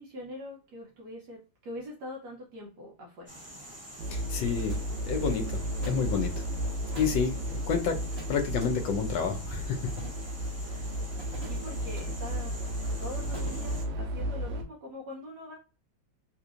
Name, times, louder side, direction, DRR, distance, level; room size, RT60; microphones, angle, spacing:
voice 1, 0.0-3.3 11.4-12.6 13.0-15.6, left 1 dB, 65° right, 1.3 m, -43 dB
sound 1, 3.3-13.8, equal, 15° right, 0.5 m, -46 dB
sound 2, 4.0-14.6, equal, 85° right, 1.4 m, -34 dB
voice 2, 4.1-6.4 7.0-8.0 8.3-9.9, left 6 dB, 75° left, 1.3 m, -30 dB
sound 3, 4.7-4.8 5.8-6.1 6.9-7.2 8.1-8.7 9.9-10.4 11.2-12.0 13.3-13.6, right 2 dB, 35° right, 1.3 m, -46 dB
3.5 x 3.0 x 2.5 m
omnidirectional pair, 2.1 m